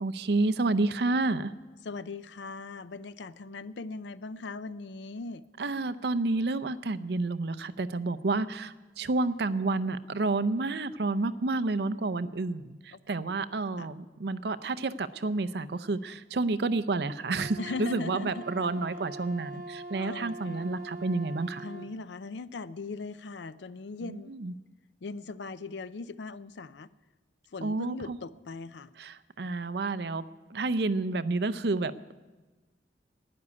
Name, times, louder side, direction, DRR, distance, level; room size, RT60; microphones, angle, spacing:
voice 1, 0.0-1.5 5.6-21.7 24.0-24.5 27.6-28.2 29.0-30.2 30.5-32.1, right 3 dB, 65° right, 13 dB, 0.6 m, -30 dB
voice 2, 1.8-5.4 12.9-13.0 13.8-13.9 17.6-18.5 19.5-19.6 20.0-20.7 21.6-24.3 25.0-26.9 27.5-28.9, left 3 dB, 80° left, 15 dB, 0.5 m, -39 dB
Wind instrument woodwind instrument, 17.3-21.9, right 2 dB, 40° right, 1.8 m, -42 dB
12.0 x 9.8 x 9.5 m, 1.2 s
head